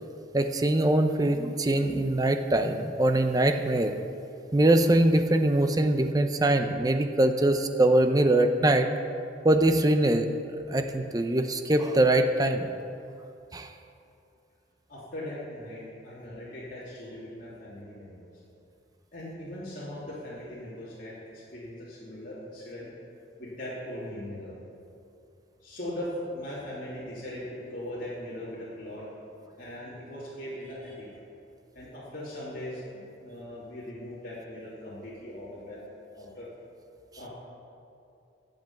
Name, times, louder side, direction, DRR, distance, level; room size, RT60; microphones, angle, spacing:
voice 1, 0.3-3.9 4.5-8.9 9.4-10.3 10.7-12.7 13.5-13.7, right 1 dB, 20° right, 7 dB, 0.6 m, -23 dB
voice 2, 14.9-18.3 19.1-22.9 23.4-24.5 25.6-29.0 29.6-31.1 31.7-35.8 36.1-36.5 37.2-37.3, left 1 dB, 50° left, -9 dB, 2.8 m, -39 dB
10.5 x 7.9 x 7.3 m, 2.6 s
head